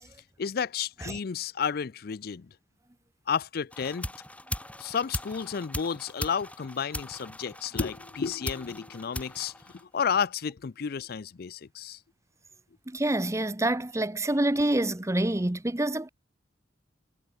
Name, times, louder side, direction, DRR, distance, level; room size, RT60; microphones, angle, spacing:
voice 1, 0.4-2.5 3.3-4.1 4.8-12.0, left 6 dB, 55° left, 0.5 m, -32 dB
sound 1, 3.7-10.3, left 1 dB, 10° left, 4.4 m, -39 dB
voice 2, 12.9-16.1, right 1 dB, 15° right, 0.9 m, -27 dB
head